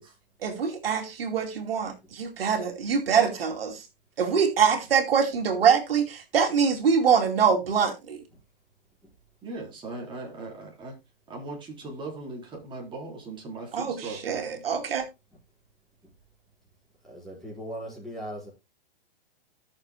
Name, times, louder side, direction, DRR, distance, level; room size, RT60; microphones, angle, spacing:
voice 1, 0.4-3.8 4.2-8.2 13.7-15.1, right 6 dB, 80° right, 2.6 m, -24 dB
voice 2, 9.4-10.9 11.3-14.6, right 2 dB, 15° right, 3.9 m, -39 dB
voice 3, 17.1-18.5, equal, ahead, 5.1 m, -38 dB
17.5 x 6.8 x 2.2 m
hypercardioid pair, 145°, 29 cm